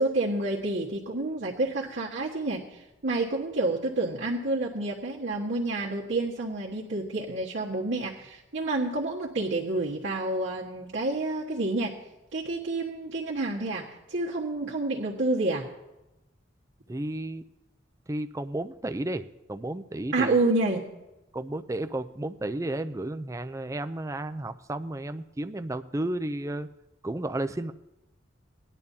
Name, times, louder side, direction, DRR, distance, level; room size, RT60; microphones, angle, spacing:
voice 1, 0.0-2.6 3.0-12.0 12.3-15.7 20.1-20.8, right 2 dB, 70° right, -7 dB, 1.5 m, -29 dB
voice 2, 16.9-17.4 18.1-19.2 19.5-20.4 21.3-26.7 27.0-27.7, right 1 dB, 15° right, 10 dB, 0.4 m, -32 dB
19.0 x 10.5 x 2.8 m, 0.96 s
head